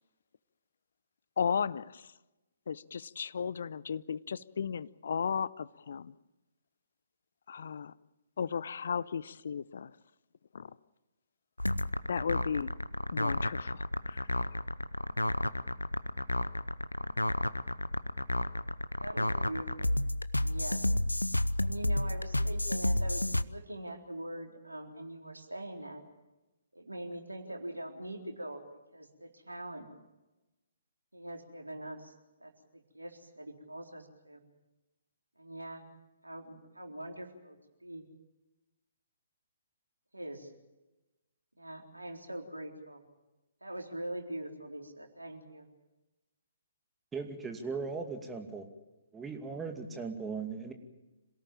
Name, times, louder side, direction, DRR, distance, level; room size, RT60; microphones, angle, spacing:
voice 1, 1.4-2.1 2.7-6.1 7.5-7.9 8.4-9.9 10.5-10.7 12.1-12.7 13.1-14.3, left 6 dB, 55° left, 19 dB, 0.7 m, -35 dB
sound 1, 11.6-23.4, left 1 dB, 85° left, 0.8 m, -31 dB
voice 2, 19.0-20.0 20.4-20.8 21.6-26.0 26.7-28.6 28.9-29.9 31.1-32.1 32.4-34.4 35.4-35.8 36.2-38.0 40.1-40.5 41.6-43.0 43.6-45.7, right 1 dB, 85° right, 3 dB, 3.9 m, -43 dB
voice 3, 47.1-48.7 49.1-50.7, right 4 dB, 10° right, 3 dB, 2.4 m, -38 dB
27.0 x 18.0 x 7.4 m, 1.0 s
figure-of-eight pair, 130°, 0 cm